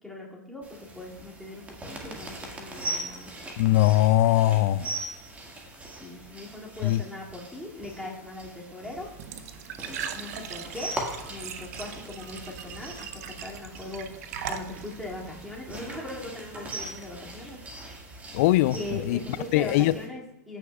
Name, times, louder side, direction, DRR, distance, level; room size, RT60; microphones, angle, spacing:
voice 1, 0.0-3.3 6.0-9.1 10.1-10.9 11.3-14.2 14.5-17.6 18.7-20.6, left 2 dB, ahead, 2.5 m, -40 dB
sound 1, 0.6-20.1, right 1 dB, 15° right, 1.9 m, -41 dB
voice 2, 3.6-4.9 6.8-7.0 18.3-19.2 19.5-19.9, left 15 dB, 55° left, 0.4 m, -21 dB
Glass / Trickle dribble / Fill (with liquid), 9.0-15.7, right 8 dB, 65° right, 0.8 m, -40 dB
sound 2, 11.0-19.6, right 1 dB, 30° right, 1.9 m, -52 dB
15.0 x 5.9 x 2.4 m
hypercardioid pair, 105°, 9 cm